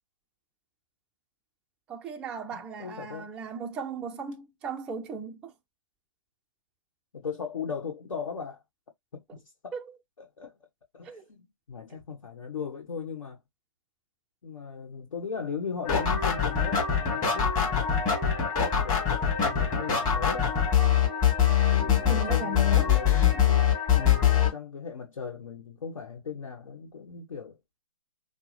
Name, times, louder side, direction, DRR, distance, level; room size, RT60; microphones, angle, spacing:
voice 1, 1.9-5.5 9.7-10.0 11.0-11.3 22.0-22.9, right 4 dB, 5° right, 0.3 m, -37 dB
voice 2, 2.5-3.3 7.1-8.6 9.1-9.7 10.4-10.5 10.9-13.4 14.4-18.1 18.7-20.5 21.6-23.5 23.9-27.6, left 6 dB, 65° left, 1.2 m, -38 dB
sound 1, 15.9-24.5, left 8 dB, 20° left, 1.6 m, -23 dB
5.9 x 2.0 x 3.1 m
figure-of-eight pair, 130°, 17 cm